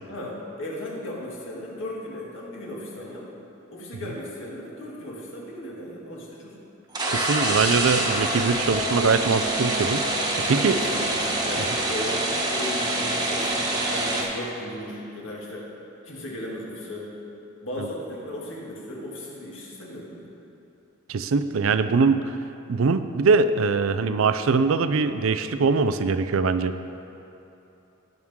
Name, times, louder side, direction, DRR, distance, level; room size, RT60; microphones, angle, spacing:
voice 1, 0.1-3.3 3.7-6.6 10.4-12.3 12.5-15.7 16.0-17.1 17.6-20.3, left 1 dB, 70° left, -4 dB, 2.3 m, -36 dB
sound 1, 6.9-14.2, right 1 dB, 20° right, 1.2 m, -25 dB
voice 2, 7.1-10.0 10.5-10.8 21.1-22.3 22.7-26.8, right 4 dB, 80° right, 11 dB, 0.5 m, -22 dB
18.0 x 6.2 x 3.7 m, 2.9 s
head